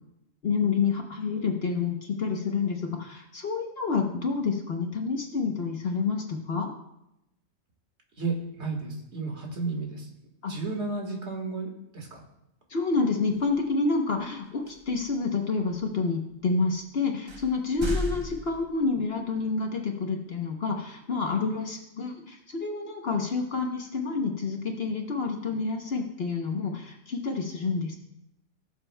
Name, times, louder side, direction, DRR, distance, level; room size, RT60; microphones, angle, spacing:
voice 1, 0.4-6.7 10.4-10.5 12.7-28.0, left 4 dB, 50° left, 3 dB, 1.1 m, -28 dB
voice 2, 8.2-10.1 10.5-12.2, right 3 dB, 55° right, 1 dB, 2.0 m, -33 dB
sound 1, 13.3-13.6 14.7-15.1 15.7-15.8 16.7-16.8 17.3-19.2, left 1 dB, 25° right, 0.8 m, -35 dB
17.5 x 7.1 x 2.2 m, 0.84 s
omnidirectional pair, 1.4 m